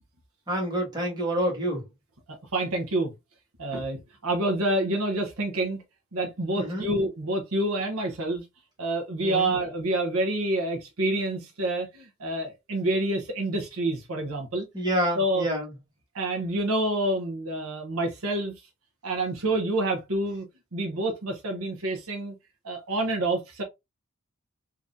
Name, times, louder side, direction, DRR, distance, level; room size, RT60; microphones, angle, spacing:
voice 1, 0.5-1.8 6.5-6.9 9.2-9.5 14.7-15.7, right 1 dB, 20° right, 1.6 m, -28 dB
voice 2, 2.3-3.1 3.6-5.8 6.1-8.5 8.8-14.7 15.1-15.5 16.1-18.7 19.0-20.4 20.7-22.3 22.6-23.6, right 1 dB, 65° right, 0.9 m, -28 dB
3.6 x 2.8 x 2.5 m
head